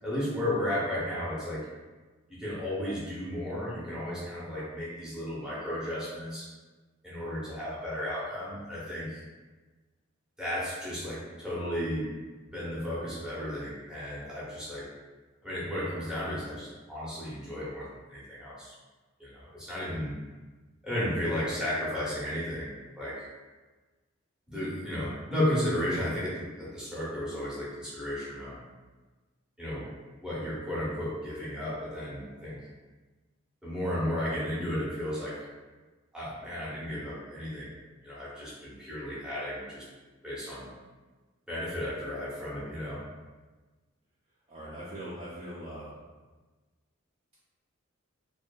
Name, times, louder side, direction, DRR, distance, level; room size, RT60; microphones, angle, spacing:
voice 1, 0.0-1.7 2.3-6.5 7.0-9.2 10.4-12.1 12.5-14.9 15.4-18.7 19.2-20.1 20.8-23.2 24.5-28.6 29.6-29.9 30.2-32.6 33.6-35.4 36.1-37.7 38.0-39.8 40.2-40.7 41.5-43.0, left 1 dB, 5° right, -9 dB, 0.7 m, -34 dB
voice 2, 44.5-46.0, right 1 dB, 30° right, -8 dB, 0.4 m, -41 dB
2.6 x 2.4 x 2.3 m, 1.3 s
head